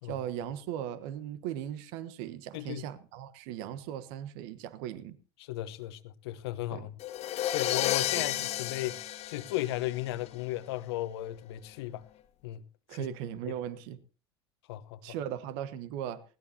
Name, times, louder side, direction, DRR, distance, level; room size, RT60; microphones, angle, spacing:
voice 1, 0.0-5.2 6.7-6.9 8.2-8.3 12.9-14.0 15.0-16.2, right 10 dB, 65° right, 1.2 m, -38 dB
voice 2, 2.5-2.8 5.4-6.9 7.5-12.0 12.4-12.6 12.9-13.1 14.7-15.0, left 15 dB, 75° left, 1.0 m, -35 dB
sound 1, 7.0-10.3, left 13 dB, 50° left, 1.6 m, -32 dB
19.5 x 17.5 x 2.8 m
hypercardioid pair, 75°, 13 cm